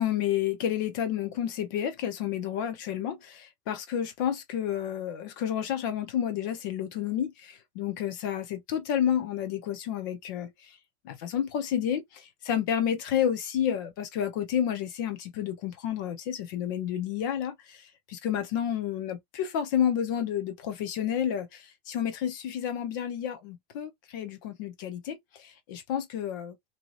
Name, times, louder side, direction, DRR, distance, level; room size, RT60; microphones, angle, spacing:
voice 1, 0.0-10.8 11.0-26.7, left 9 dB, 20° left, 0.3 m, -30 dB
3.0 x 2.6 x 2.2 m
supercardioid pair, 170°, 31 cm